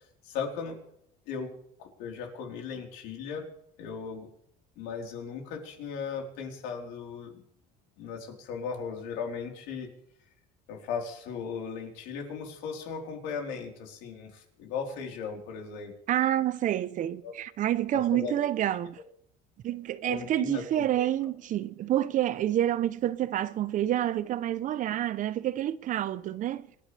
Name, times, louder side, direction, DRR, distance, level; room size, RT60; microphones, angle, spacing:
voice 1, 0.2-0.8 1.3-1.5 1.8-3.5 3.8-4.3 4.8-7.4 8.0-9.9 10.7-15.9 17.2-17.3 17.9-18.3 20.0-21.1, left 6 dB, 85° left, 4.3 m, -37 dB
voice 2, 16.1-19.0 19.6-26.7, right 12 dB, 50° right, 0.8 m, -28 dB
27.0 x 10.5 x 3.5 m
cardioid pair, 120°, 17 cm